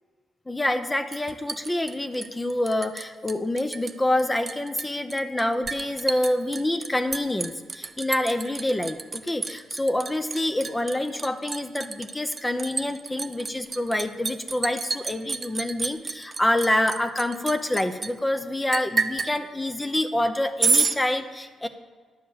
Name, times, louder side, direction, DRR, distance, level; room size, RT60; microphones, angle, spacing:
voice 1, 0.5-21.7, left 1 dB, 15° left, 7 dB, 0.7 m, -27 dB
Liquid, 1.1-3.0 3.3-3.9 4.2-18.1 18.7-19.3 20.6-21.0, right 4 dB, 35° right, 0.7 m, -29 dB
10.5 x 5.1 x 8.0 m, 1.5 s
cardioid pair, 70°, 0 cm